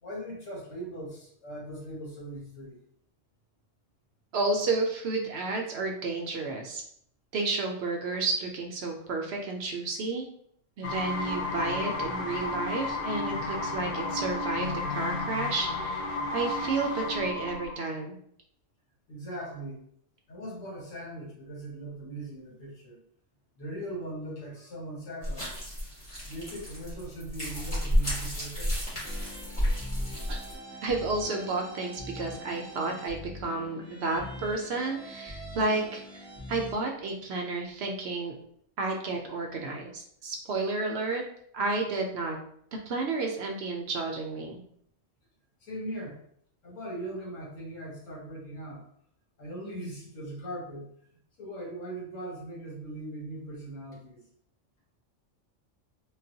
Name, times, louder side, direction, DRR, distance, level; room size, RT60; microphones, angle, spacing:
voice 1, 0.0-2.8 16.2-16.3 19.1-19.8 20.3-23.0 23.6-25.6 26.3-28.7 32.1-32.2 45.6-46.2 46.6-48.8 49.4-50.9 51.4-54.2, right 1 dB, 85° left, -3 dB, 1.4 m, -40 dB
voice 2, 4.3-6.8 7.3-10.2 10.8-18.2 30.3-30.4 30.8-38.3 38.8-41.2 41.5-42.4 42.9-44.6, right 3 dB, 65° right, 2 dB, 0.8 m, -31 dB
sound 1, 10.8-17.8, left 2 dB, 60° left, 0.6 m, -32 dB
sound 2, 25.2-30.5, equal, 25° left, 1.5 m, -31 dB
sound 3, 29.0-36.8, equal, 15° right, 0.7 m, -43 dB
3.8 x 2.2 x 2.7 m, 0.67 s
omnidirectional pair, 1.3 m